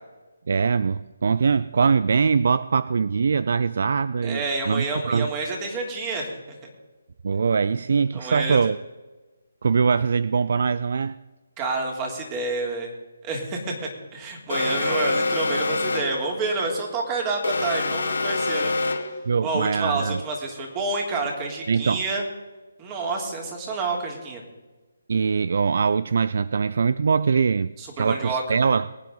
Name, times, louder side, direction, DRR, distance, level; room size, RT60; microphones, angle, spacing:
voice 1, 0.5-5.3 7.2-8.8 9.6-11.2 19.3-20.2 21.7-22.0 25.1-28.9, right 5 dB, 60° right, 17 dB, 0.4 m, -22 dB
voice 2, 4.2-6.6 8.1-8.6 11.6-12.9 13.2-18.7 19.4-22.2 22.8-24.4 27.8-28.4, right 3 dB, 25° right, 1 dB, 3.0 m, -28 dB
Alarm, 14.5-16.2 17.4-19.2, left 3 dB, 75° left, 2.0 m, -25 dB
23.0 x 9.4 x 3.9 m, 1.2 s
figure-of-eight pair, 150°, 0 cm